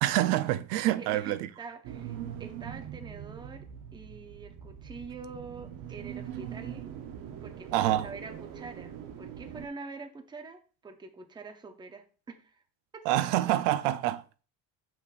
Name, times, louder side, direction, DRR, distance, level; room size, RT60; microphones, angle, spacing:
voice 1, 0.0-1.5 7.7-8.1 13.1-14.2, right 14 dB, 85° right, 0.6 m, -26 dB
voice 2, 1.0-3.7 3.9-6.9 7.4-12.6 12.9-13.0, right 4 dB, 10° right, 0.5 m, -45 dB
sound 1, 1.8-9.7, right 9 dB, 50° right, 0.7 m, -42 dB
6.9 x 6.0 x 2.4 m
cardioid pair, 160°, 41 cm